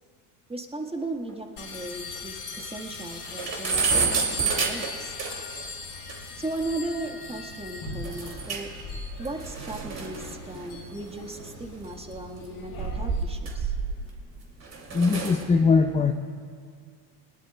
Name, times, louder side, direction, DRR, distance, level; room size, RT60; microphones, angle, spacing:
voice 1, 0.5-5.1 6.4-8.7 9.2-13.7, right 2 dB, 10° right, 3 dB, 1.5 m, -36 dB
sound 1, 1.3-1.4 1.7-1.8 2.2-2.3 2.6-2.7 3.0-5.6 6.1-6.2 8.0-8.8 9.1-11.7 12.5-14.2 14.6-15.4, right 5 dB, 30° right, 2.6 m, -30 dB
sound 2, 1.6-13.2, left 4 dB, 50° left, 3.9 m, -40 dB
voice 2, 14.9-16.1, left 4 dB, 15° left, 5 dB, 0.6 m, -21 dB
20.0 x 19.5 x 2.3 m, 2.1 s
hypercardioid pair, 85°, 48 cm